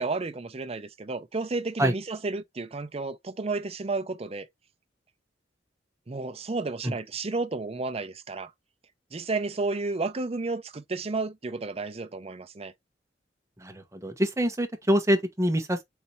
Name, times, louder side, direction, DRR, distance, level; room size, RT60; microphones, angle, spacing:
voice 1, 0.0-4.5 6.1-8.5 9.1-12.7, right 3 dB, 35° right, 0.6 m, -32 dB
voice 2, 13.6-15.8, equal, 15° right, 1.0 m, -25 dB
4.2 x 2.8 x 4.5 m
head